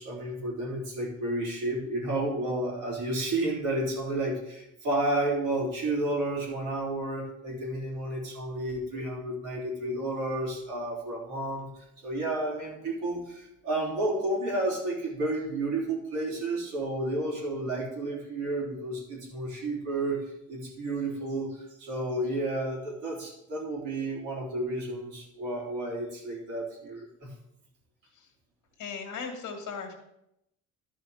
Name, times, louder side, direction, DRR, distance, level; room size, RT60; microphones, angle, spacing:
voice 1, 0.0-20.2 20.5-27.3, right 2 dB, 90° right, -4 dB, 3.7 m, -31 dB
voice 2, 28.8-29.9, left 5 dB, 85° left, 3 dB, 1.8 m, -37 dB
12.0 x 5.3 x 4.9 m, 0.80 s
cardioid pair, 90°, 30 cm